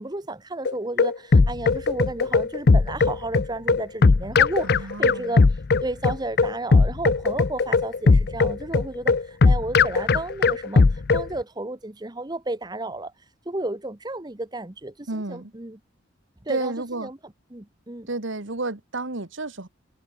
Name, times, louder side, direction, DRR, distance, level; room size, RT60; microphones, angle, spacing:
voice 1, 0.0-5.5 5.8-13.1 13.5-15.8 16.4-16.7 17.0-17.2 17.5-18.1, right 2 dB, 20° right, 1.0 m, -32 dB
sound 1, 0.6-11.3, left 4 dB, 50° left, 0.5 m, -18 dB
voice 2, 4.6-5.4 15.1-15.5 16.5-17.1 18.1-19.7, right 2 dB, 70° right, 1.8 m, -31 dB
head